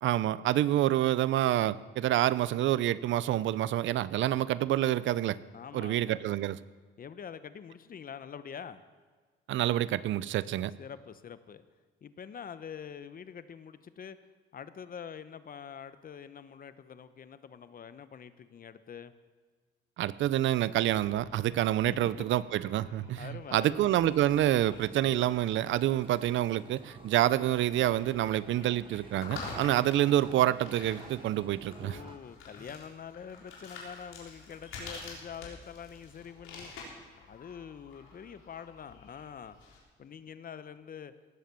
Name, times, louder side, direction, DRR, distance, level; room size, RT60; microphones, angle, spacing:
voice 1, 0.0-5.4 5.7-6.6 9.5-10.7 20.0-32.0, right 13 dB, 75° right, 18 dB, 0.6 m, -27 dB
voice 2, 5.5-6.2 7.0-8.8 10.8-11.7 12.0-14.2 14.5-19.1 21.9-22.0 23.2-23.9 29.5-29.8 31.8-36.7 37.2-39.6 40.0-41.1, left 7 dB, 45° left, 13 dB, 0.9 m, -45 dB
sound 1, 20.8-39.8, left 3 dB, 85° left, 4.0 m, -49 dB
sound 2, 23.8-32.2, right 4 dB, 25° right, 0.9 m, -52 dB
18.0 x 7.6 x 6.9 m, 1.5 s
cardioid pair, 90°, 20 cm